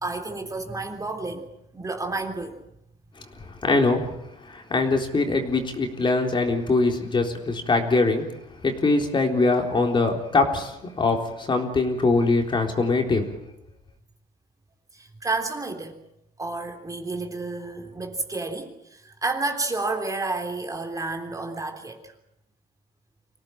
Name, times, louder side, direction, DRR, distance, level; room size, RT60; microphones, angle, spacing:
voice 1, 0.0-2.6 14.9-16.0 16.4-22.1, right 3 dB, 20° right, 4 dB, 3.5 m, -31 dB
voice 2, 3.4-4.1 4.4-8.3 8.6-13.3, left 3 dB, 30° left, 3 dB, 3.8 m, -23 dB
25.5 x 17.5 x 9.1 m, 0.84 s
cardioid pair, 110°, 17 cm